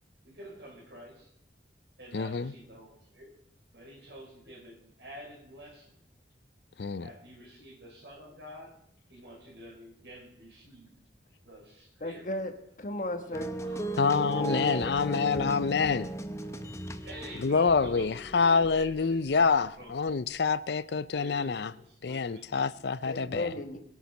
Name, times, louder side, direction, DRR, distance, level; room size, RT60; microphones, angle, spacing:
voice 1, 0.2-1.3 2.0-3.4 3.7-5.9 7.0-8.7 9.1-10.9 11.4-12.4 13.6-14.0 14.3-14.9 17.0-19.9 21.2-22.8, equal, 70° right, 5.6 m, -49 dB
voice 2, 2.1-2.5 6.8-7.1 14.0-16.1 17.4-21.7 22.0-23.5, left 5 dB, 65° left, 0.5 m, -27 dB
voice 3, 12.0-12.5 12.8-13.5 23.1-23.8, left 1 dB, 45° left, 1.4 m, -34 dB
sound 1, 13.3-19.5 20.1-20.2, right 1 dB, 15° left, 0.7 m, -37 dB
21.5 x 7.3 x 5.3 m
head